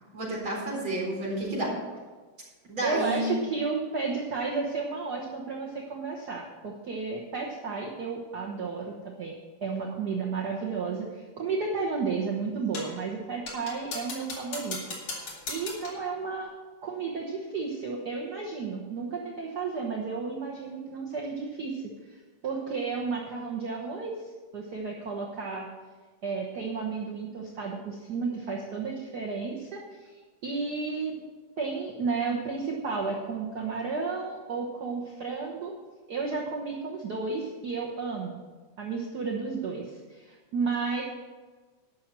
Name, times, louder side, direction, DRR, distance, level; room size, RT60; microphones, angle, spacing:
voice 1, 0.1-1.7 2.6-3.3, right 1 dB, 40° right, -4 dB, 4.9 m, -30 dB
voice 2, 2.8-9.3 9.6-14.8 15.5-16.5 16.8-25.7 26.2-31.1 31.6-35.7 36.1-38.4 38.8-41.0, right 4 dB, 55° right, -2 dB, 1.1 m, -32 dB
sound 1, 12.7-13.0 13.5-16.1, left 3 dB, 55° left, 3.3 m, -38 dB
12.0 x 6.5 x 7.5 m, 1.4 s
omnidirectional pair, 3.4 m